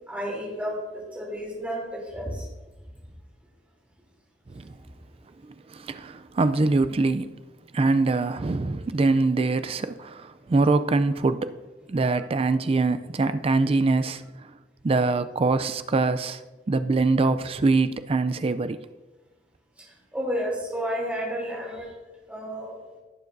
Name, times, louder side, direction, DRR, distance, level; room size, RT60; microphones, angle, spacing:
voice 1, 0.1-2.4 20.1-21.9 22.3-22.8, equal, 10° right, 3.1 m, -31 dB
voice 2, 5.4-7.4 7.7-11.5 11.9-14.5 14.8-16.4 16.7-18.8, right 3 dB, 30° right, 0.4 m, -24 dB
17.0 x 7.2 x 2.6 m
head